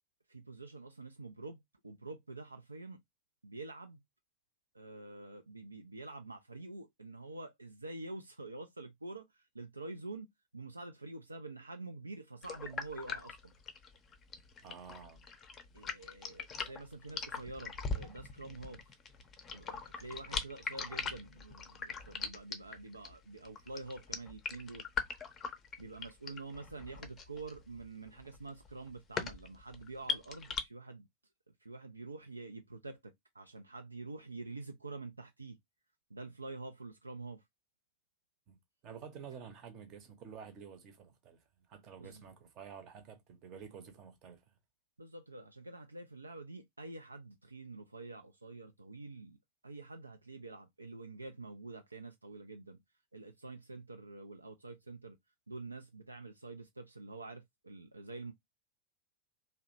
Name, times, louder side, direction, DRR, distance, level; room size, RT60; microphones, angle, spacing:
voice 1, 0.3-3.0 3.4-4.0 4.7-13.5 15.7-18.9 19.5-24.9 25.8-31.1 31.6-35.6 36.1-37.4 42.0-42.2 45.0-49.4 49.6-52.8 53.1-55.2 55.5-58.3, right 3 dB, 80° right, 0.3 m, -47 dB
sound 1, 12.4-30.6, left 5 dB, 25° left, 0.5 m, -41 dB
voice 2, 14.6-15.3 38.5-38.6 38.8-41.4 41.7-44.4, right 7 dB, 40° right, 0.7 m, -50 dB
2.8 x 2.0 x 2.5 m
figure-of-eight pair, 90°, 0 cm